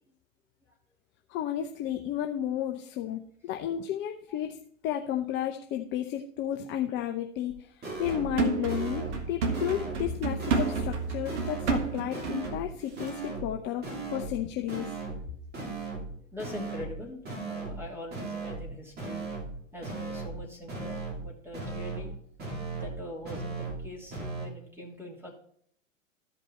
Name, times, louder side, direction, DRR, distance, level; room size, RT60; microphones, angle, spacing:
voice 1, 1.3-4.6 4.8-7.5 8.0-14.9, left 11 dB, 30° left, 4 dB, 0.6 m, -32 dB
sound 1, 7.5-7.6 7.8-8.4 8.7-9.3 9.5-10.1 10.4-11.0 11.3-11.8 12.1-12.7 13.0-13.5 13.8-14.4 14.7-15.3 15.5-16.1 16.4-17.0 17.3-17.8 18.1-18.7 19.0-19.5 19.8-20.4 20.7-21.3 21.5-22.1 22.4-23.0 23.2-23.8 24.1-24.5, right 3 dB, 25° right, 2.5 m, -37 dB
sound 2, 8.0-12.6 13.0-13.1, right 5 dB, 60° right, 1.6 m, -31 dB
voice 2, 16.3-19.2 19.7-22.1 22.7-25.3, left 1 dB, 5° right, -1 dB, 2.8 m, -43 dB
13.0 x 5.3 x 4.3 m, 0.63 s
figure-of-eight pair, 95°, 40 cm